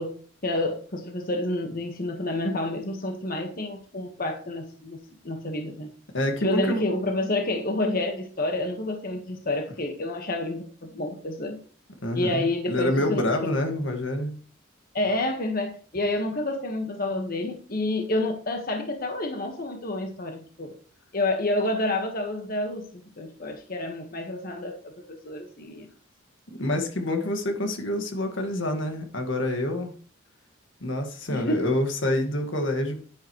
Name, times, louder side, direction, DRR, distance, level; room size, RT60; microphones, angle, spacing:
voice 1, 0.0-5.0 5.2-5.9 6.4-11.6 12.1-13.5 14.9-20.7 21.1-24.8 25.1-25.9 31.3-31.6, left 2 dB, 50° left, 1.5 m, -29 dB
voice 2, 6.1-6.8 12.0-14.4 26.6-29.9 30.8-33.0, left 1 dB, 75° left, 1.9 m, -27 dB
10.5 x 10.0 x 3.2 m
head